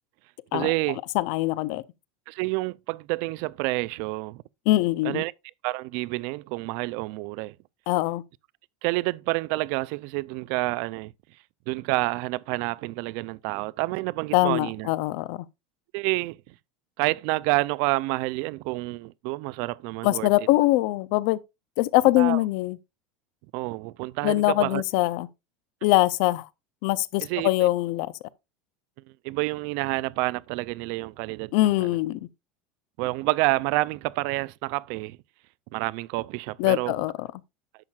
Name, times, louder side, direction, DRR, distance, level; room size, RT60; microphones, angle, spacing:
voice 1, 0.5-1.0 2.3-4.4 5.0-5.3 5.6-7.6 8.8-11.1 11.7-14.9 15.9-16.5 17.0-20.5 22.2-22.4 23.5-24.8 27.2-27.7 29.2-31.9 33.0-35.2 35.7-37.0, right 22 dB, 60° right, 0.4 m, -28 dB
voice 2, 1.1-1.8 4.7-5.2 7.9-8.2 14.3-15.4 20.0-21.4 21.8-22.8 24.2-25.3 25.8-26.5 26.8-28.1 31.5-32.2 36.6-37.3, left 17 dB, 60° left, 0.5 m, -23 dB
10.5 x 7.2 x 2.4 m
supercardioid pair, 150°, 5 cm